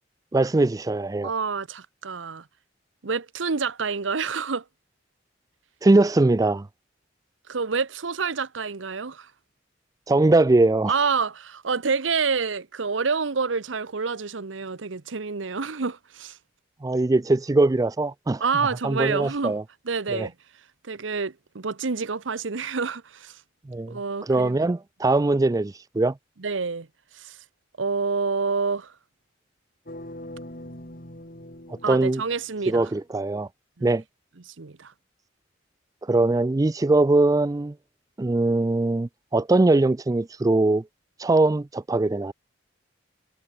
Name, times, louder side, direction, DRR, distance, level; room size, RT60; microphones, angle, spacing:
voice 1, 0.3-1.3 5.8-6.7 10.1-10.9 16.8-18.4 18.8-19.6 20.1-20.3 23.7-26.1 31.9-32.2 32.7-33.5 33.8-34.0 36.0-37.7 38.2-40.8 41.2-42.3, right 2 dB, 20° right, 0.4 m, -21 dB
voice 2, 1.2-2.5 3.0-4.6 7.5-9.3 10.9-16.4 18.4-19.6 19.8-20.3 20.8-23.4 23.9-24.6 26.4-26.9 27.1-27.4 27.8-28.9 31.8-32.9 33.8-33.9 34.5-34.9, right 5 dB, 80° right, 0.9 m, -28 dB
sound 1, 29.9-32.9, left 1 dB, 45° left, 6.1 m, -42 dB
head